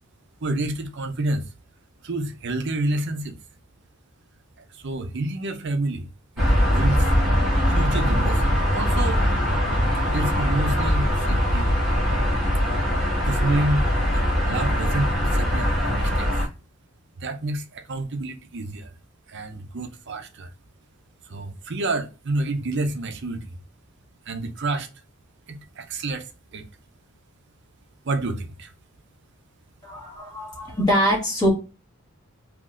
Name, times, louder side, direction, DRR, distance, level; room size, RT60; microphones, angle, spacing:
voice 1, 0.4-1.5 2.0-3.4 4.7-6.1 6.4-6.5 6.7-7.1 7.7-9.2 10.1-11.7 12.6-12.8 13.2-16.3 17.2-18.9 19.3-20.5 21.3-23.6 24.3-24.9 25.5-26.7 28.0-28.7, right 2 dB, 55° right, 0.6 m, -29 dB
sound 1, 6.4-16.5, equal, ahead, 1.4 m, -21 dB
voice 2, 29.8-31.5, equal, 20° left, 1.9 m, -23 dB
3.8 x 2.9 x 2.5 m
head